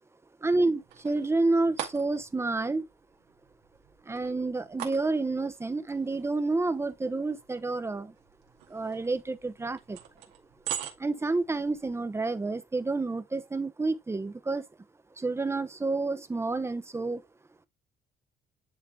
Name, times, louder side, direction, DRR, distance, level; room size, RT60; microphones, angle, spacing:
voice 1, 0.4-2.9 4.1-8.1 8.7-10.0 11.0-14.6 15.2-17.2, right 3 dB, 15° right, 0.9 m, -29 dB
sound 1, 0.5-12.2, right 11 dB, 90° right, 2.2 m, -44 dB
10.5 x 3.9 x 3.4 m
cardioid pair, 110°, 17 cm